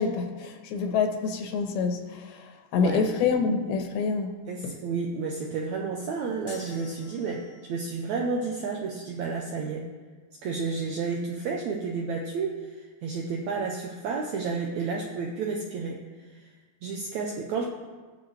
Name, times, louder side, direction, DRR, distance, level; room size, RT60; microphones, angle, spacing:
voice 1, 0.0-4.4 4.6-4.7, left 5 dB, 90° left, 5 dB, 3.0 m, -27 dB
voice 2, 4.5-9.9 10.4-16.0 16.8-17.6, right 4 dB, 85° right, 0 dB, 1.6 m, -31 dB
sound 1, 6.5-7.8, left 4 dB, 50° left, 0.9 m, -45 dB
18.5 x 7.0 x 3.2 m, 1.4 s
omnidirectional pair, 4.3 m